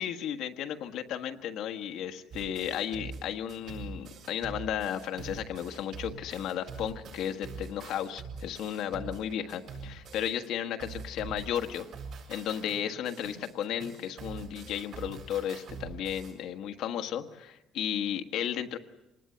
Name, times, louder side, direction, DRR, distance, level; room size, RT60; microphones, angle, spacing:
voice 1, 0.0-11.9 12.3-18.8, left 9 dB, 70° left, 6 dB, 1.4 m, -34 dB
sound 1, 2.3-10.5 10.8-16.3, right 5 dB, 55° right, 7.2 m, -44 dB
26.5 x 20.0 x 7.9 m, 0.93 s
cardioid pair, 155°, 0 cm